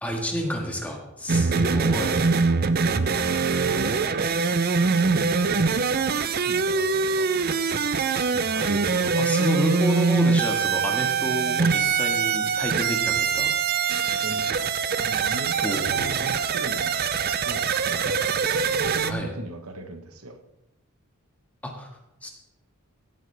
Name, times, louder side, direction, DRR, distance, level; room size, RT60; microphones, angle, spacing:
voice 1, 0.0-2.2 8.3-13.5 15.6-16.1 19.0-19.3 21.6-21.9 22.2-22.3, left 1 dB, 5° left, 0 dB, 1.7 m, -30 dB
sound 1, 1.3-19.1, right 5 dB, 45° right, 0.5 m, -23 dB
voice 2, 3.7-4.4 5.1-7.4 14.2-18.2 18.5-20.4, right 2 dB, 80° right, 6 dB, 1.2 m, -39 dB
16.0 x 9.3 x 3.4 m, 0.92 s
head